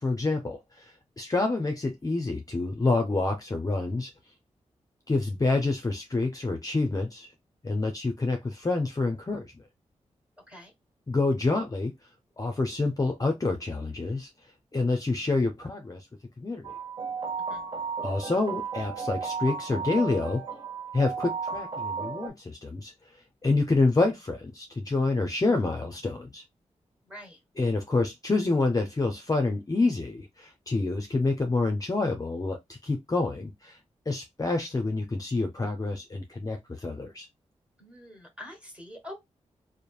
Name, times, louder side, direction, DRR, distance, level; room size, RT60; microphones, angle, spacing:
voice 1, 0.0-4.1 5.1-7.3 7.6-9.5 11.1-11.9 12.4-14.3 14.7-16.1 16.4-16.7 18.0-20.4 20.9-22.9 23.4-26.4 27.6-33.8 34.1-37.3, left 3 dB, 30° left, 0.6 m, -27 dB
sound 1, 16.6-22.3, right 5 dB, 40° right, 0.8 m, -34 dB
voice 2, 27.1-27.4 37.8-39.1, left 1 dB, 10° right, 1.4 m, -45 dB
3.1 x 2.0 x 2.3 m
cardioid pair, 55°, 13 cm